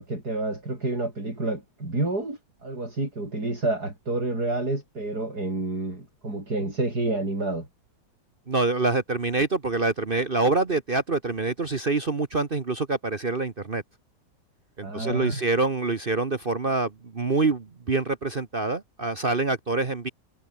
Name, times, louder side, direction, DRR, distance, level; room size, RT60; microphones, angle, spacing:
voice 1, 0.0-7.7 14.8-15.4, right 2 dB, 60° right, 7.3 m, -29 dB
voice 2, 8.5-13.8 14.8-20.1, right 3 dB, 35° right, 1.3 m, -26 dB
omnidirectional pair, 1.9 m